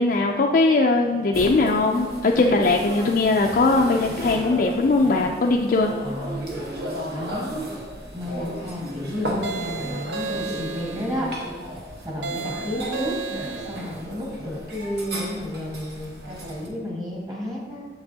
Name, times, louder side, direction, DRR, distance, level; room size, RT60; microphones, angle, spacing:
voice 1, 0.0-5.9, left 3 dB, 50° left, 0 dB, 0.4 m, -20 dB
sound 1, 1.3-16.7, equal, 60° right, 1.2 m, -35 dB
voice 2, 6.0-6.4 7.1-7.7 8.1-11.3 11.7-13.2 13.7-17.9, equal, 20° right, -3 dB, 1.5 m, -31 dB
sound 2, 9.4-11.2 12.2-14.0, right 4 dB, 80° right, 0.5 m, -33 dB
7.3 x 6.7 x 2.8 m, 1.4 s
head